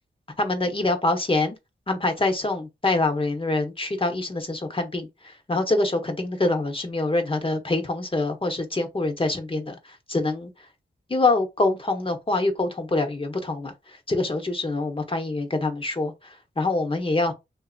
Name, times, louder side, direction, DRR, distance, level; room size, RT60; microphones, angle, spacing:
voice 1, 0.4-1.6 1.9-10.5 11.1-13.7 14.1-17.3, left 2 dB, 25° left, 1.0 m, -25 dB
2.7 x 2.6 x 2.4 m
cardioid pair, 50°, 20 cm